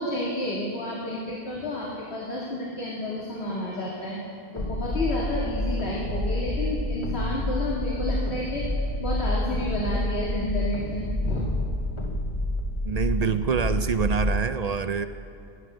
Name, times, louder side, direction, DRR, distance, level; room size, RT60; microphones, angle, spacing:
voice 1, 0.0-4.2 4.5-8.7 9.0-11.5, left 1 dB, 80° left, -5 dB, 2.3 m, -30 dB
sound 1, 4.6-14.4, left 1 dB, 30° left, 1.0 m, -28 dB
voice 2, 12.8-15.1, right 6 dB, 50° right, 11 dB, 0.5 m, -26 dB
16.5 x 13.0 x 6.7 m, 2.5 s
omnidirectional pair, 1.1 m